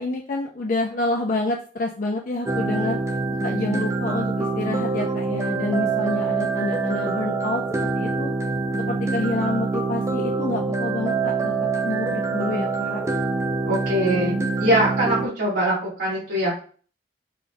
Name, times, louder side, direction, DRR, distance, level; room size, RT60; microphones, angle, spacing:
voice 1, 0.0-3.0 3.4-8.3 8.8-13.0, left 2 dB, 45° left, 1 dB, 0.4 m, -28 dB
sound 1, 2.5-15.3, right 3 dB, 15° right, 0.4 m, -25 dB
voice 2, 13.6-16.6, right 1 dB, 85° right, -8 dB, 1.7 m, -23 dB
4.0 x 2.2 x 3.9 m, 0.41 s
head